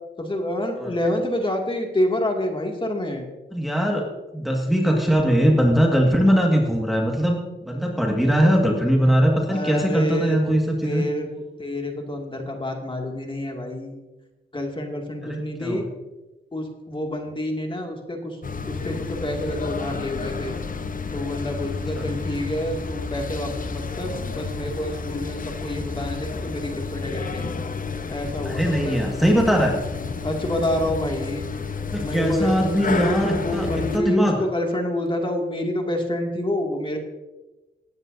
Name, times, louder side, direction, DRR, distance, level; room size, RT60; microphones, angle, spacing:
voice 1, 0.2-3.2 9.5-10.4 10.8-11.3 11.6-14.0 14.5-15.9 16.5-18.4 18.7-20.5 21.1-27.5 28.1-29.3 30.2-31.5 32.0-32.6 33.0-37.0, left 1 dB, 25° left, 2 dB, 2.2 m, -28 dB
voice 2, 3.5-4.1 4.3-11.0 15.2-15.9 22.0-22.1 28.4-29.7 31.8-34.4, equal, ahead, 0 dB, 1.7 m, -21 dB
sound 1, 18.4-34.0, left 4 dB, 40° left, 0.9 m, -31 dB
18.5 x 9.7 x 2.7 m, 1.1 s
cardioid pair, 70°, 21 cm